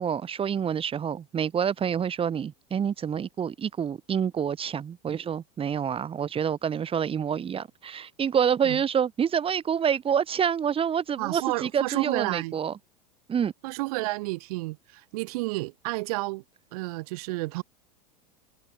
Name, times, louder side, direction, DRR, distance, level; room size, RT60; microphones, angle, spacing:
voice 1, 0.0-12.7 13.3-13.5, right 8 dB, 25° right, 4.7 m, -27 dB
voice 2, 11.2-12.5 13.6-16.4 16.7-17.6, right 23 dB, 65° right, 3.9 m, -31 dB
hypercardioid pair, 100°, 21 cm